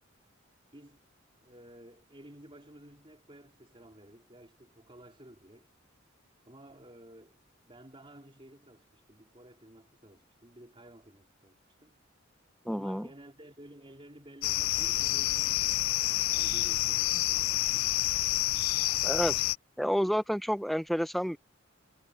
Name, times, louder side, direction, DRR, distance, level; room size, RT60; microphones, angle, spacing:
voice 1, 0.7-1.0 1.4-5.7 6.5-7.4 7.7-12.0 12.6-18.1, right 1 dB, 25° right, 4.0 m, -53 dB
voice 2, 12.7-13.1 19.0-19.4 19.8-21.4, equal, ahead, 0.9 m, -29 dB
sound 1, 14.4-19.6, left 16 dB, 85° left, 0.4 m, -28 dB
head